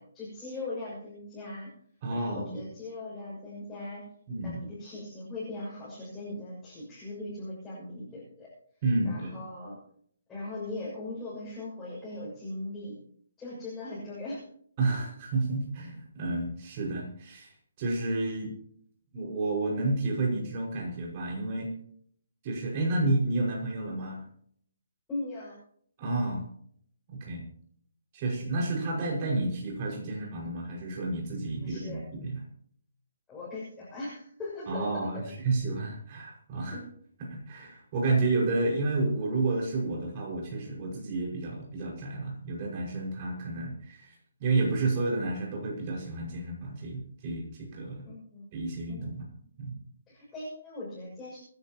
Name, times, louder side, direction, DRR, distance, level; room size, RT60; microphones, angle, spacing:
voice 1, 0.0-1.7 2.1-4.0 4.4-8.5 9.0-9.8 10.3-13.0 13.4-14.4 25.1-25.6 31.6-32.0 33.3-35.2 36.7-36.8 48.0-48.4 48.9-49.1 50.1-51.4, left 2 dB, 10° left, -9 dB, 6.7 m, -39 dB
voice 2, 2.0-2.6 4.3-4.6 8.8-9.4 14.8-17.5 17.8-18.5 19.1-21.7 22.4-24.2 26.0-26.4 27.1-27.4 28.1-32.4 34.7-36.8 37.2-44.1 44.4-48.0 48.5-49.3 49.6-49.7, right 2 dB, 25° right, -1 dB, 5.7 m, -30 dB
26.5 x 11.5 x 3.0 m, 0.62 s
hypercardioid pair, 170°, 0 cm